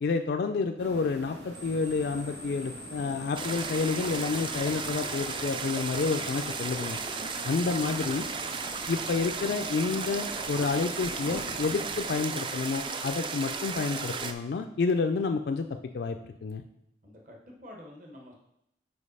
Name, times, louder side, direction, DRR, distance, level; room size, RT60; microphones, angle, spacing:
voice 1, 0.0-7.0 7.4-8.2 8.9-15.7 15.9-16.6, left 4 dB, 65° left, 5 dB, 0.3 m, -29 dB
sound 1, 0.8-12.1, equal, 90° right, 1.4 m, -45 dB
sound 2, 1.5-8.9, left 2 dB, 70° right, 2.8 m, -46 dB
sound 3, 3.4-14.3, right 5 dB, 30° right, 0.3 m, -35 dB
voice 2, 7.9-8.3 17.0-18.3, left 1 dB, 45° right, 0 dB, 1.1 m, -49 dB
5.1 x 4.7 x 5.4 m, 0.79 s
head